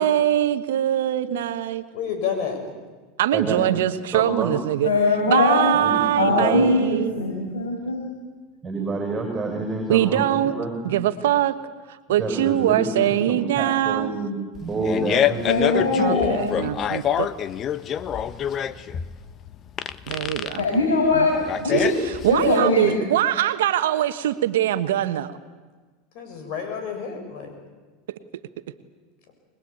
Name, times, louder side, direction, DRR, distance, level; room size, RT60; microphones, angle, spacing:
voice 1, 0.0-1.8 3.2-4.9 5.3-7.1 9.9-10.6 10.8-11.6 11.9-14.1 16.0-17.3 20.1-20.7 21.1-21.3 21.7-21.9 22.2-25.3 28.1-28.2, right 12 dB, 80° right, 11 dB, 1.3 m, -22 dB
voice 2, 1.9-2.6 26.1-27.5, left 7 dB, 60° left, 5 dB, 7.1 m, -29 dB
voice 3, 3.3-3.7 4.1-4.5 5.7-6.6 8.6-10.9 12.2-13.0 13.3-14.3 14.6-15.4, right 3 dB, 20° right, 2 dB, 5.9 m, -28 dB
voice 4, 4.8-5.8 6.2-8.1 15.5-16.6 20.6-21.9 22.3-22.9, left 2 dB, 90° left, 0 dB, 6.0 m, -21 dB
Fart, 14.5-22.5, left 10 dB, 40° left, 1.0 m, -26 dB
24.0 x 21.0 x 8.7 m, 1.3 s
hypercardioid pair, 95°, 0 cm